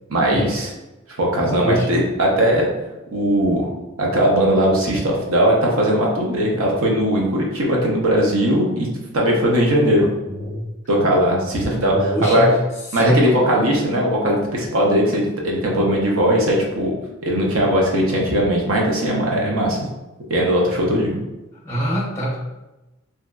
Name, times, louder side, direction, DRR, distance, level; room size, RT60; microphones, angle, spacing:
voice 1, 0.1-0.7 1.2-2.7 3.1-3.7 4.0-8.9 9.1-10.1 10.9-12.5 12.9-16.9 17.2-19.9 20.3-21.2, equal, 80° right, -2 dB, 0.7 m, -19 dB
voice 2, 11.9-12.5 12.9-13.2 21.6-22.4, equal, 10° left, -4 dB, 0.7 m, -23 dB
3.0 x 2.7 x 2.3 m, 1.0 s
head